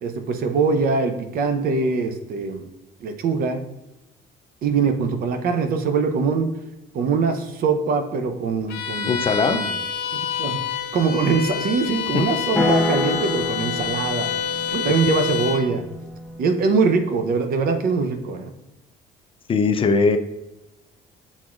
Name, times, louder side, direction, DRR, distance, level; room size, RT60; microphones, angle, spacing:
voice 1, 0.0-2.6 3.0-3.6 4.6-6.5 6.9-9.1 9.5-9.7 10.1-10.6 10.9-14.3 14.7-15.8 16.4-18.5, right 4 dB, 60° right, 7 dB, 0.7 m, -22 dB
Bowed string instrument, 8.7-15.7, left 7 dB, 85° left, 0.6 m, -27 dB
voice 2, 9.1-9.6 12.1-12.2 19.5-20.2, left 4 dB, 30° left, 8 dB, 0.4 m, -19 dB
sound 1, 12.6-16.7, left 2 dB, 10° left, 0.8 m, -27 dB
6.1 x 3.6 x 2.4 m, 0.95 s
cardioid pair, 110°, 17 cm